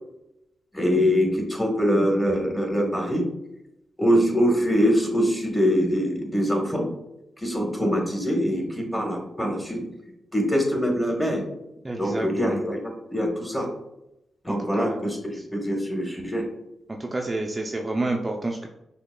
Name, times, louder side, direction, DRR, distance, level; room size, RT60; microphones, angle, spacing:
voice 1, 0.7-3.3 4.0-6.9 7.4-9.8 10.3-11.4 12.0-12.8 13.1-13.7 14.4-15.2 15.5-16.4, equal, 10° left, 1 dB, 1.3 m, -23 dB
voice 2, 11.8-12.6 14.5-15.4 16.9-18.7, right 2 dB, 25° right, 1 dB, 0.4 m, -30 dB
5.9 x 2.1 x 2.2 m, 0.86 s
supercardioid pair, 45°, 0 cm